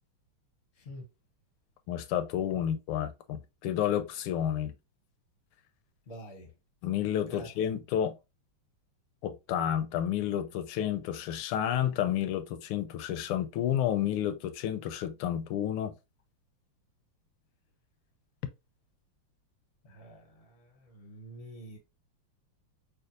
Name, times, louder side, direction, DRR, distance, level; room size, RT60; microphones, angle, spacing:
voice 1, 1.9-4.7 6.8-8.2 9.2-15.9, left 10 dB, 80° left, 1.5 m, -30 dB
voice 2, 6.1-6.5 7.3-7.5 19.9-20.2 20.9-21.8, equal, 45° left, 0.8 m, -46 dB
5.2 x 2.3 x 2.5 m
omnidirectional pair, 2.4 m